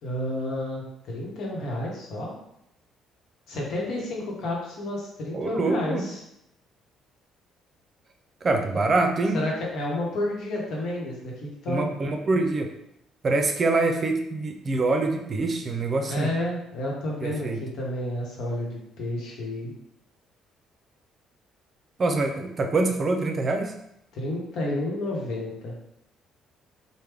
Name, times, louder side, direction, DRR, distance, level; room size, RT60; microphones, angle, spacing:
voice 1, 0.0-2.3 3.5-6.2 9.3-11.9 16.1-19.7 24.1-25.7, left 1 dB, 70° left, -2 dB, 1.0 m, -30 dB
voice 2, 5.3-6.1 8.4-9.4 11.7-12.7 13.2-16.3 17.2-17.6 22.0-23.7, right 3 dB, 45° right, 5 dB, 0.5 m, -25 dB
3.2 x 2.2 x 3.4 m, 0.79 s
supercardioid pair, 65°, 0 cm